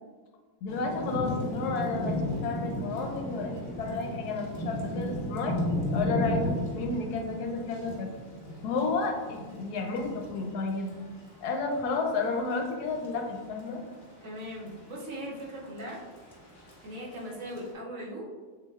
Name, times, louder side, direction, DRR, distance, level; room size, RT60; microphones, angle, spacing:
voice 1, 0.6-5.6 5.9-8.1 8.6-11.0 11.4-13.8, left 3 dB, 85° left, 3 dB, 1.1 m, -31 dB
Thunder / Rain, 0.7-17.7, left 1 dB, 35° left, 0.4 m, -36 dB
voice 2, 14.2-16.0 16.8-18.3, equal, 65° right, -3 dB, 1.1 m, -39 dB
6.1 x 2.2 x 2.3 m, 1.5 s
omnidirectional pair, 1.6 m